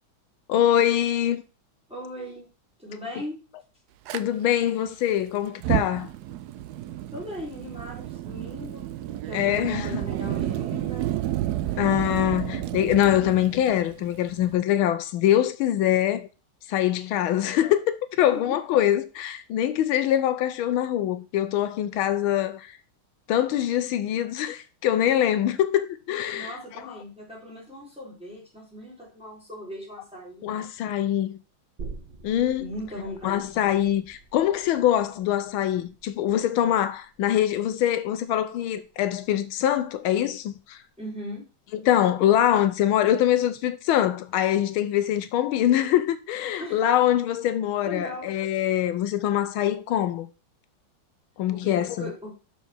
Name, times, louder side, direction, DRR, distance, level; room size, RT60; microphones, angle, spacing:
voice 1, 0.5-1.4 4.1-6.1 9.3-10.0 11.8-16.3 16.7-22.8 23.3-26.6 30.4-31.4 32.2-32.7 33.2-40.8 41.7-50.3 51.4-52.1, left 11 dB, 85° left, 1.5 m, -24 dB
voice 2, 1.9-2.5 2.8-3.4 7.1-9.0 9.2-11.1 18.2-18.6 26.3-30.6 32.3-33.6 41.0-41.5 46.6-46.8 47.8-48.3 51.5-52.4, equal, 5° right, 3.6 m, -38 dB
Fire, 4.1-4.2 5.5-14.5, right 13 dB, 75° right, 0.9 m, -31 dB
sound 1, 31.8-39.1 39.4-39.5, right 4 dB, 35° right, 1.1 m, -46 dB
7.0 x 5.7 x 4.3 m
omnidirectional pair, 2.3 m